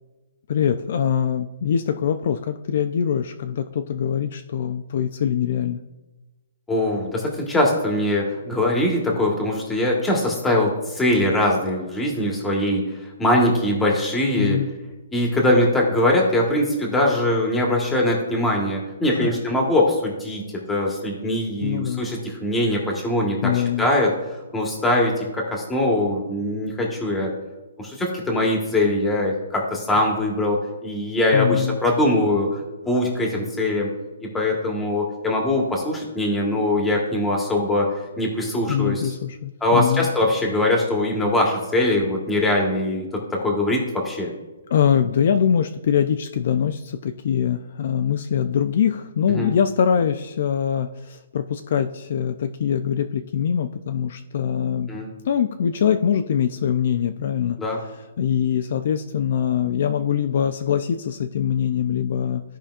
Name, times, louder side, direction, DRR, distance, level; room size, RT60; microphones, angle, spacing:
voice 1, 0.5-5.8 14.4-14.7 19.2-19.3 21.6-22.0 23.4-23.9 31.3-31.8 38.7-40.1 44.7-54.9 55.2-57.6 58.2-62.4, left 8 dB, 50° left, 7 dB, 0.4 m, -23 dB
voice 2, 6.7-14.6 15.1-20.4 20.7-27.3 27.8-32.6 32.8-33.9 34.2-37.9 38.2-39.1 39.6-44.3 49.3-49.5 54.9-55.1 57.6-57.8, left 1 dB, 5° left, -1 dB, 1.4 m, -22 dB
14.5 x 5.1 x 2.5 m, 1.1 s
hypercardioid pair, 165°, 0 cm